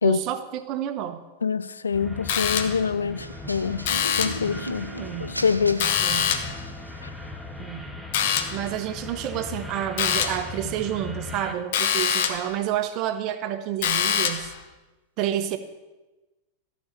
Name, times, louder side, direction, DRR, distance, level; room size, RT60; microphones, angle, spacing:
voice 1, 0.0-1.2 5.0-5.4 6.0-6.4 7.6-8.0 8.5-14.5 15.2-15.6, right 11 dB, 40° right, 1.1 m, -29 dB
voice 2, 1.4-3.8 4.2-4.9 5.3-5.9, left 5 dB, 75° left, 0.4 m, -25 dB
sound 1, 1.9-11.5, left 2 dB, 10° left, 1.3 m, -38 dB
sound 2, 2.3-3.0 3.8-4.5 5.8-6.6 8.1-8.7 10.0-10.5 11.7-12.5 13.8-14.6, left 8 dB, 55° left, 1.0 m, -25 dB
sound 3, 3.2-7.1, right 1 dB, 90° right, 0.8 m, -38 dB
15.0 x 6.5 x 7.0 m
figure-of-eight pair, 90°, 0 cm